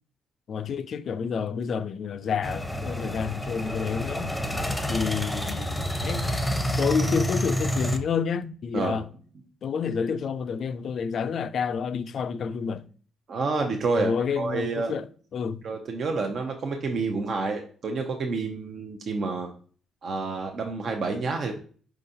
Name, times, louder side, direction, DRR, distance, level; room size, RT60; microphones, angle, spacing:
voice 1, 0.5-4.3 4.9-6.3 6.8-9.1 9.6-12.8 14.0-15.1 15.3-15.6, left 6 dB, 60° left, 0.3 m, -29 dB
sound 1, 2.4-8.0, equal, 5° left, 0.7 m, -28 dB
voice 2, 13.3-15.0 15.6-19.5 20.0-21.5, right 3 dB, 55° right, 0.6 m, -29 dB
4.6 x 3.9 x 2.7 m
cardioid pair, 90°, 0 cm